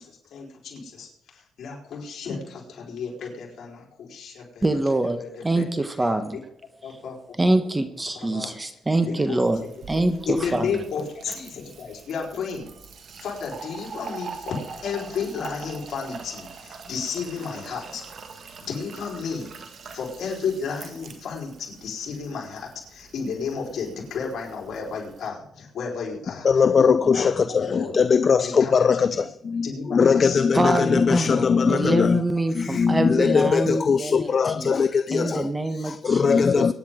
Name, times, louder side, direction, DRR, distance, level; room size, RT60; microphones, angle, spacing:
voice 1, 0.0-5.7 6.3-6.4 6.8-7.2 8.1-8.6 9.0-9.4 10.3-12.7 13.2-18.0 18.6-19.5 19.9-28.0 28.4-29.3 29.6-30.4 30.9-31.4, left 5 dB, 65° left, 4.3 m, -33 dB
voice 2, 4.6-6.4 7.4-9.6 9.9-10.7 30.5-34.8 35.1-36.7, right 2 dB, 15° right, 1.3 m, -25 dB
Fill (with liquid), 9.4-25.3, right 5 dB, 55° right, 1.9 m, -43 dB
voice 3, 26.4-32.2 32.5-35.5 35.8-36.7, left 6 dB, 45° left, 0.4 m, -20 dB
23.5 x 9.9 x 3.8 m
cardioid pair, 90°, 0 cm